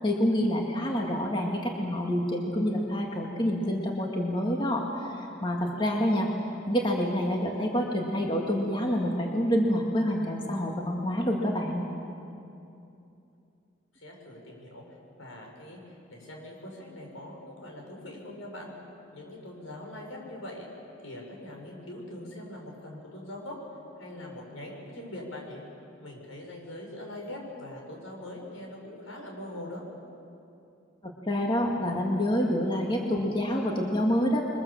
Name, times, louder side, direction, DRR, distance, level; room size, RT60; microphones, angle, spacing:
voice 1, 0.0-6.3 6.7-11.9 31.0-34.4, equal, 25° left, 0 dB, 2.1 m, -27 dB
voice 2, 13.9-14.8 15.2-15.8 16.1-18.7 19.1-20.7 21.0-23.6 24.0-25.6 26.0-29.8, left 1 dB, 85° left, 0 dB, 6.3 m, -42 dB
28.5 x 23.0 x 7.3 m, 2.7 s
head